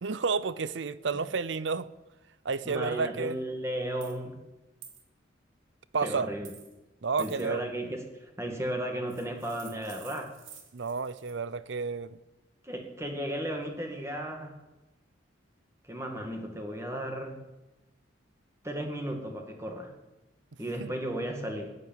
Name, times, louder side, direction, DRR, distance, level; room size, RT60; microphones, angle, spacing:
voice 1, 0.0-1.9 2.4-3.4 5.9-6.3 7.0-7.6 10.7-12.2 20.8-20.9, right 4 dB, 70° right, 0.6 m, -31 dB
voice 2, 2.7-4.4 6.0-6.5 7.2-10.3 12.6-14.6 15.8-17.4 18.6-19.9 20.6-21.8, right 1 dB, 15° right, 1.8 m, -35 dB
sound 1, 4.0-4.2 4.8-5.0 6.4-6.8 7.2-7.5 9.1-11.4, right 8 dB, 90° right, 2.7 m, -50 dB
14.5 x 9.8 x 9.1 m
head